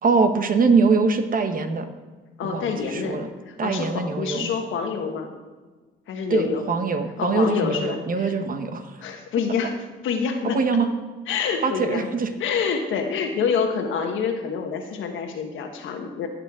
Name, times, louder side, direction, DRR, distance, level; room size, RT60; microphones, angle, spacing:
voice 1, 0.0-1.9 2.4-3.3 3.6-4.5 6.3-8.8 10.5-10.9 11.6-12.3, right 4 dB, 45° right, 8 dB, 1.1 m, -22 dB
voice 2, 2.4-3.2 3.5-5.3 6.1-6.7 7.2-8.4 9.0-9.8 10.0-10.8 11.3-12.1 12.4-16.3, left 6 dB, 80° left, 4 dB, 1.5 m, -27 dB
16.5 x 6.7 x 3.7 m, 1.3 s
cardioid pair, 90°, 20 cm